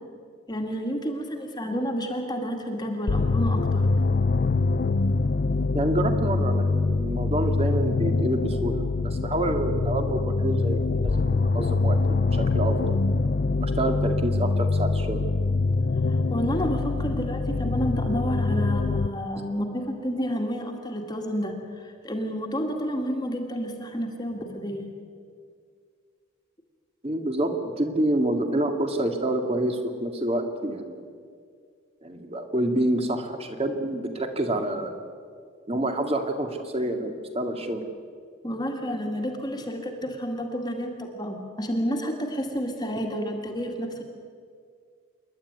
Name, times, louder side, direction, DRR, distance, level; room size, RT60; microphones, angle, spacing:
voice 1, 0.5-3.9 16.1-24.9 38.4-44.0, equal, 20° left, 2 dB, 2.0 m, -30 dB
sound 1, 3.1-19.1, left 3 dB, 50° left, 0.5 m, -24 dB
voice 2, 5.7-13.0 13.6-15.3 27.0-31.1 32.0-35.0 35.7-37.8, right 1 dB, 30° right, 5 dB, 2.0 m, -28 dB
27.0 x 11.5 x 9.6 m, 2.2 s
head